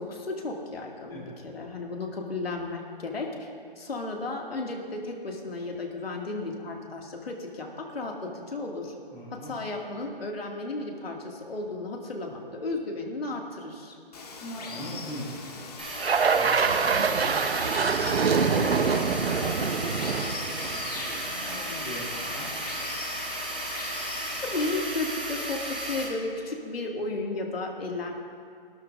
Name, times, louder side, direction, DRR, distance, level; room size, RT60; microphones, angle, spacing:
voice 1, 0.0-3.5 3.8-8.9 9.4-14.0 24.3-28.1, left 2 dB, 80° left, 0 dB, 2.4 m, -34 dB
voice 2, 9.1-9.6 9.8-10.0 14.4-15.7 16.3-17.9 18.3-22.9, equal, 10° left, -8 dB, 2.2 m, -41 dB
Water, 14.1-24.8, left 3 dB, 40° left, 1.7 m, -41 dB
sound 1, 15.8-26.0, right 1 dB, 10° right, 0.5 m, -35 dB
sound 2, 16.0-21.3, right 5 dB, 90° right, 0.9 m, -25 dB
22.5 x 12.5 x 2.6 m, 2.3 s
hypercardioid pair, 170°, 29 cm